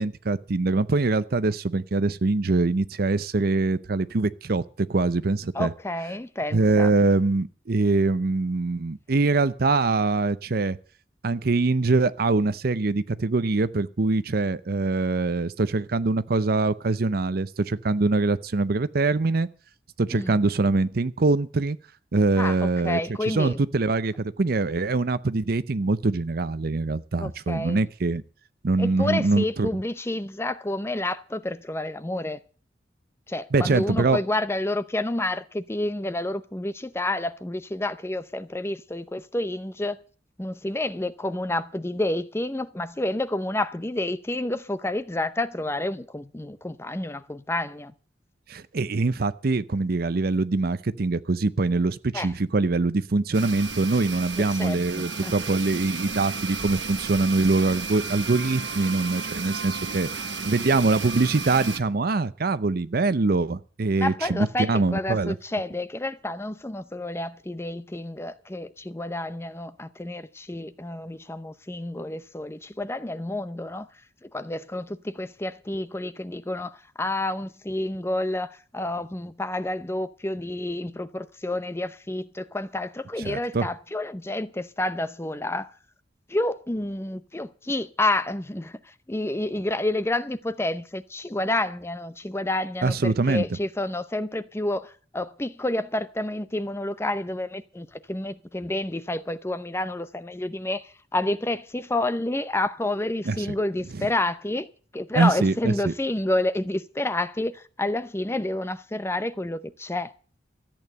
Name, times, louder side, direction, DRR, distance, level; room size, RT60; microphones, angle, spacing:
voice 1, 0.0-5.7 6.5-10.8 11.2-19.5 20.0-21.8 22.1-23.0 23.3-28.2 28.6-29.8 33.5-34.2 48.5-60.1 60.4-65.3 83.2-83.7 92.8-93.4 103.3-103.4 105.1-105.9, right 3 dB, 55° right, 0.6 m, -23 dB
voice 2, 5.5-6.9 20.1-20.3 22.4-23.6 27.2-27.8 28.8-32.4 33.3-40.0 40.4-47.9 52.1-52.3 54.6-55.3 64.0-73.9 74.2-85.7 86.3-104.7 104.9-110.1, left 1 dB, 15° left, 0.6 m, -29 dB
sound 1, 53.3-61.8, right 4 dB, 80° right, 1.1 m, -33 dB
13.5 x 8.9 x 7.8 m
head